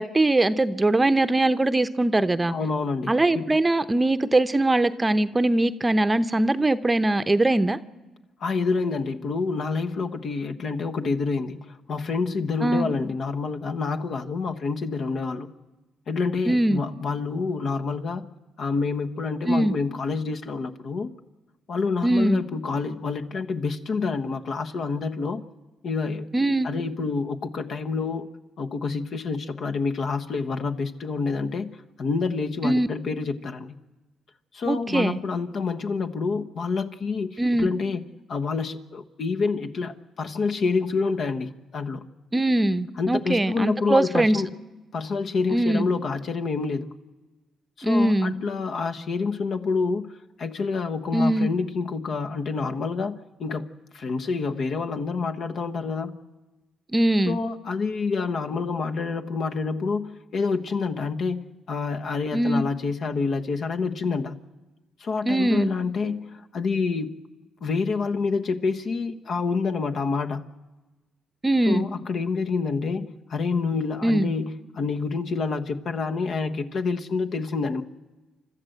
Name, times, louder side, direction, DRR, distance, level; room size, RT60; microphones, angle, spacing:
voice 1, 0.0-2.5 3.1-7.8 12.6-12.9 16.5-16.8 19.5-19.7 22.0-22.4 26.3-26.7 32.6-32.9 34.7-35.2 37.4-37.7 42.3-44.4 45.5-45.9 47.8-48.3 51.1-51.5 56.9-57.4 62.3-62.6 65.2-65.7 71.4-71.9 74.0-74.3, right 1 dB, 20° right, 11 dB, 0.8 m, -21 dB
voice 2, 2.5-3.6 8.4-15.5 16.1-18.2 18.6-21.1 21.7-25.4 25.8-26.3 26.6-28.3 28.6-31.7 32.0-33.8 34.5-38.0 38.3-42.0 43.0-44.6 44.9-47.0 47.8-50.1 50.4-56.2 57.3-64.4 65.0-67.2 67.6-70.5 71.7-77.8, left 4 dB, 60° left, 6 dB, 1.2 m, -28 dB
29.5 x 13.0 x 7.9 m, 1.2 s
cardioid pair, 90°, 0 cm